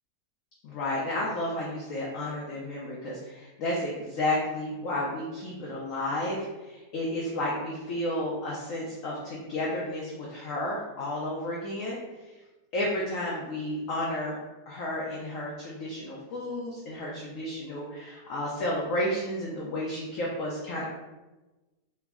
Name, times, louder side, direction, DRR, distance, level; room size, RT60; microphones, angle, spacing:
voice 1, 0.6-12.0 12.3-12.4 12.7-14.4 14.7-20.8, left 1 dB, 70° left, -4 dB, 0.8 m, -32 dB
3.4 x 2.0 x 3.4 m, 1.1 s
omnidirectional pair, 1.9 m